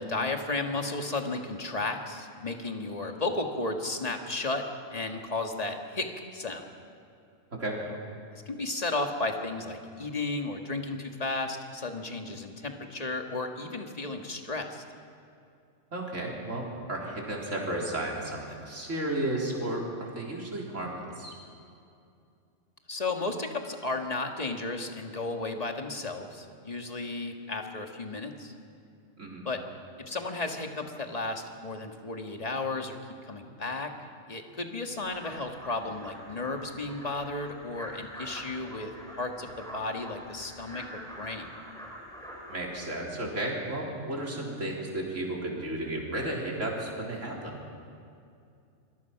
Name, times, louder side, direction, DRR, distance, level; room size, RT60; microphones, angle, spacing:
voice 1, 0.0-4.6 4.9-6.1 6.3-6.7 8.3-14.8 22.9-28.5 29.5-29.6 30.1-33.0 33.2-33.9 34.3-38.9 39.2-41.5, left 2 dB, 30° left, 3 dB, 1.8 m, -33 dB
voice 2, 15.9-21.3 29.2-29.4 42.5-47.6, right 1 dB, 85° right, -2 dB, 4.3 m, -33 dB
sound 1, 35.0-42.7, equal, 5° left, 5.3 m, -45 dB
27.0 x 22.0 x 5.9 m, 2.5 s
omnidirectional pair, 1.3 m